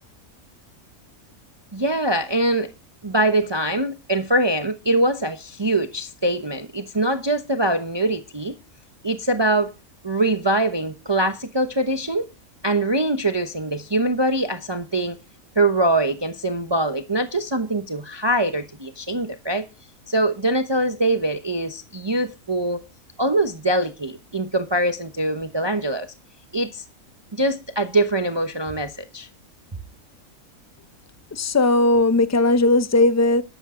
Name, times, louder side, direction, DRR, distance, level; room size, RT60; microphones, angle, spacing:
voice 1, 1.7-2.7 3.0-8.6 9.0-9.7 10.0-12.3 12.6-15.2 15.6-19.7 20.1-22.8 23.2-26.1 26.5-26.8 27.3-29.3, right 1 dB, 20° right, 0.9 m, -23 dB
voice 2, 31.3-33.4, left 2 dB, 15° left, 0.6 m, -17 dB
12.5 x 12.0 x 3.8 m
omnidirectional pair, 1.5 m